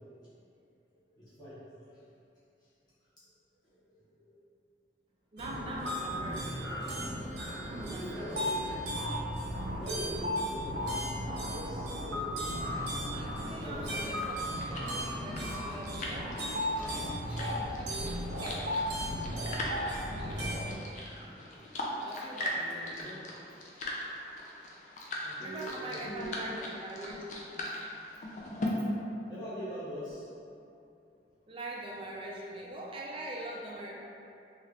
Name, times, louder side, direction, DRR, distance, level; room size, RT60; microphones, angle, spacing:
voice 1, 1.2-1.6 1.9-2.0 3.7-4.3 7.6-8.7 9.3-9.4 9.7-11.1 11.3-12.4 13.5-14.1 16.7-17.1 21.2-22.1 22.6-23.2 25.2-26.4 28.9-30.2, equal, 20° left, -13 dB, 0.9 m, -44 dB
voice 2, 5.3-6.7 7.6-8.8 13.1-18.9 20.1-20.5 22.0-23.0 25.4-27.2 27.5-27.6 31.5-33.9, right 1 dB, 30° right, -3 dB, 0.4 m, -43 dB
sound 1, 5.4-20.7, equal, 65° right, 0.6 m, -35 dB
sound 2, 13.4-28.7, left 1 dB, 40° left, 0.4 m, -41 dB
2.9 x 2.4 x 3.2 m, 2.7 s
head